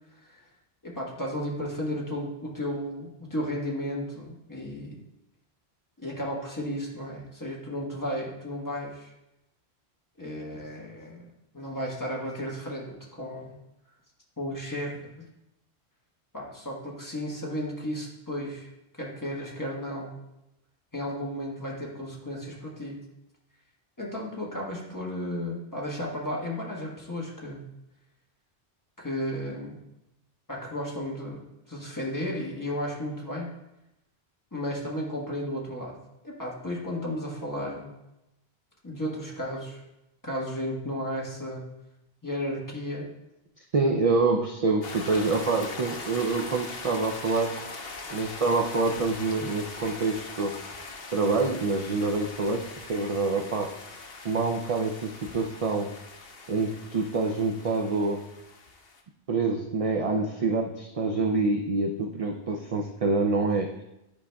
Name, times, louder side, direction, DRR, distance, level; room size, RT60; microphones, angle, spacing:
voice 1, 0.8-5.0 6.0-9.1 10.2-11.3 11.5-13.5 14.4-15.1 16.3-18.7 19.0-20.1 20.9-23.0 24.0-27.6 29.0-29.8 30.5-33.5 34.5-36.0 36.2-37.9 38.8-39.8 40.2-41.7 42.2-43.1, equal, 20° left, -3 dB, 1.3 m, -34 dB
voice 2, 43.7-47.6 48.1-50.6 51.1-53.7 54.2-56.0 56.5-58.3 59.3-63.7, right 3 dB, 50° right, 2 dB, 0.4 m, -26 dB
sound 1, 44.8-59.0, left 3 dB, 65° left, 1.0 m, -41 dB
11.0 x 4.8 x 2.3 m, 0.90 s
omnidirectional pair, 1.1 m